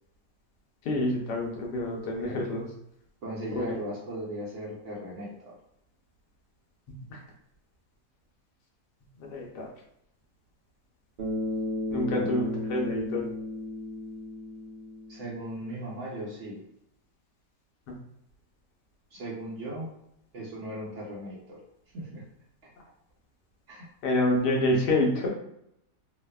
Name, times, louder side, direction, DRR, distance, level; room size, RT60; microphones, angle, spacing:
voice 1, 0.8-2.7 3.6-3.7 7.1-7.2 9.2-9.7 11.9-13.2 24.0-25.3, left 1 dB, 85° left, -1 dB, 1.3 m, -27 dB
voice 2, 2.2-2.5 3.2-5.6 11.9-12.4 15.1-16.6 19.1-19.9 20.3-21.6 21.9-22.2 22.6-22.7 23.7-23.9, right 1 dB, 65° right, -5 dB, 0.8 m, -38 dB
Bass guitar, 11.2-15.6, left 1 dB, 90° right, 0.4 m, -34 dB
3.0 x 2.0 x 2.2 m, 0.77 s
omnidirectional pair, 1.7 m